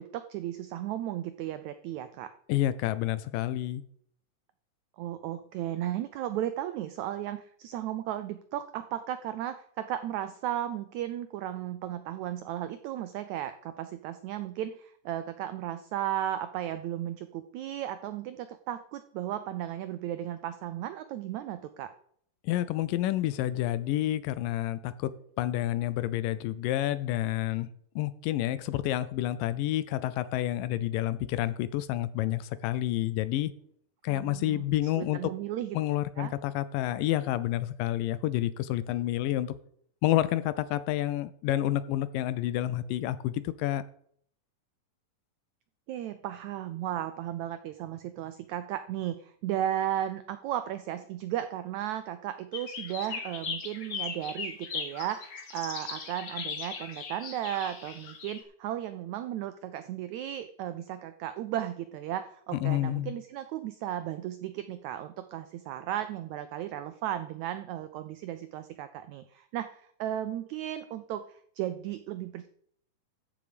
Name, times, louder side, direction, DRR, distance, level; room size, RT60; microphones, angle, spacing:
voice 1, 0.0-2.3 5.0-21.9 34.1-34.6 35.0-35.8 36.2-36.3 45.9-72.5, right 11 dB, 85° right, 11 dB, 1.6 m, -35 dB
voice 2, 2.5-3.8 22.4-25.1 25.4-27.7 28.0-33.5 34.0-35.3 35.7-39.5 40.0-43.8 62.6-63.1, left 14 dB, 80° left, 15 dB, 2.2 m, -29 dB
sound 1, 52.5-58.4, left 5 dB, 55° left, 1.1 m, -38 dB
14.0 x 7.0 x 5.1 m, 0.63 s
omnidirectional pair, 4.0 m